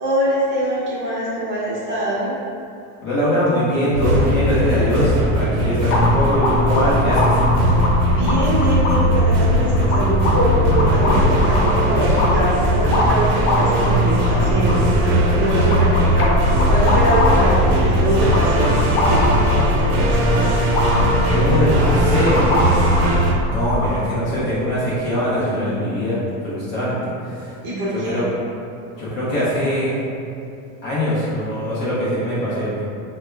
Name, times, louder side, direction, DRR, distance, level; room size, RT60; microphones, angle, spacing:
voice 1, 0.0-2.3 8.1-18.8 19.0-20.6 27.6-28.3, right 1 dB, 30° right, -8 dB, 0.8 m, -23 dB
voice 2, 3.0-7.4 21.3-22.5 23.5-26.2 26.4-27.5 27.9-28.2 29.0-29.9 30.8-32.8, equal, 30° left, -9 dB, 0.6 m, -22 dB
sound 1, 3.9-23.3, equal, 65° right, 0.6 m, -19 dB
sound 2, 5.9-23.9, left 1 dB, 65° left, 0.7 m, -22 dB
3.4 x 2.1 x 3.2 m, 2.6 s
supercardioid pair, 165°, 41 cm